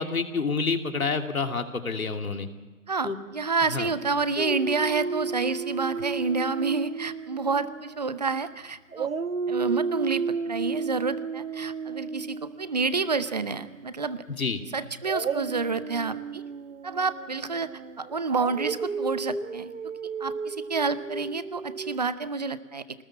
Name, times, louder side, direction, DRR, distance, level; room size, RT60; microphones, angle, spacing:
voice 1, 0.0-2.5 3.0-3.2 3.7-3.9 14.3-14.6, left 4 dB, 80° left, 5 dB, 2.7 m, -28 dB
voice 2, 2.9-9.1 9.5-14.2 14.7-16.4 16.8-19.7 20.2-22.9, right 4 dB, 30° right, 13 dB, 0.8 m, -29 dB
Dog, 4.4-8.5 8.9-13.9 15.0-22.0, right 5 dB, 70° right, 1.2 m, -33 dB
25.5 x 19.5 x 7.3 m, 1.3 s
hypercardioid pair, 165°, 41 cm